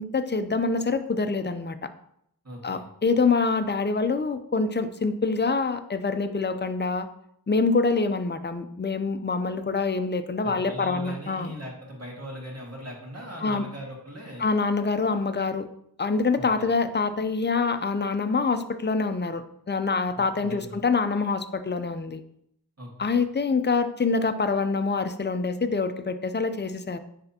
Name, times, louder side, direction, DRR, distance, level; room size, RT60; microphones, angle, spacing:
voice 1, 0.0-1.9 2.6-7.1 7.5-11.5 13.4-13.7 14.4-15.7 16.0-22.2 23.0-27.0, left 4 dB, 30° left, 10 dB, 0.5 m, -25 dB
voice 2, 2.4-2.8 10.4-14.4 16.3-16.7 20.1-20.8 22.8-23.1, equal, 45° right, -1 dB, 1.8 m, -39 dB
9.8 x 3.4 x 2.8 m, 0.73 s
wide cardioid pair, 50°, 36 cm